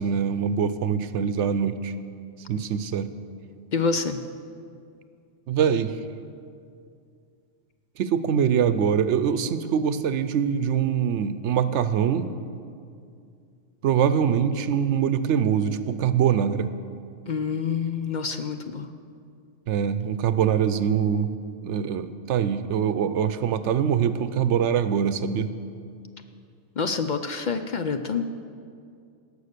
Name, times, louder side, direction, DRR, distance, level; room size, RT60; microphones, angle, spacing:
voice 1, 0.0-1.9 2.5-3.1 5.5-6.0 8.0-12.3 13.8-16.7 19.7-21.3 21.6-25.5, right 8 dB, 75° right, 13 dB, 0.9 m, -23 dB
voice 2, 3.7-4.2 17.3-18.9 26.8-28.2, left 5 dB, 55° left, 8 dB, 0.5 m, -27 dB
17.5 x 6.8 x 6.7 m, 2.4 s
omnidirectional pair, 1.2 m